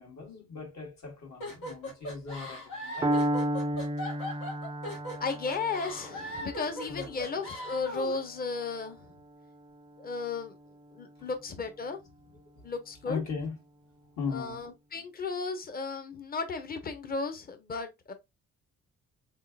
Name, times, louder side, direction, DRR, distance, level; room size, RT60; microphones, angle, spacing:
voice 1, 0.0-3.2 6.9-7.2 11.2-11.3 12.6-12.7 13.0-13.6 14.2-14.6, left 5 dB, 65° left, 2.0 m, -38 dB
sound 1, 1.4-8.2, left 1 dB, 80° left, 1.8 m, -39 dB
Piano, 3.0-10.9, right 1 dB, 15° right, 0.4 m, -34 dB
voice 2, 5.2-9.1 10.0-10.5 10.9-12.0 12.6-13.2 14.3-18.1, left 4 dB, 30° left, 0.9 m, -35 dB
3.9 x 3.7 x 2.4 m
cardioid pair, 90°, 30 cm